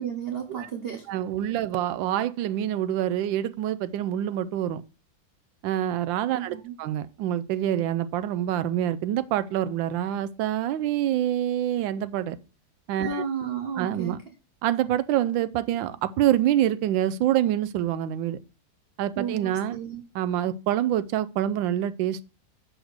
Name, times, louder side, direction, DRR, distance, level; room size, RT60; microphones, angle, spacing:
voice 1, 0.0-1.1 6.4-6.7 13.0-14.2 19.2-20.0, right 7 dB, 50° right, 0.7 m, -33 dB
voice 2, 1.1-4.8 5.6-12.4 12.9-13.2 13.8-14.2 14.6-18.4 19.0-19.8 20.1-22.2, right 11 dB, 90° right, 1.3 m, -26 dB
6.2 x 4.8 x 6.4 m
omnidirectional pair, 2.0 m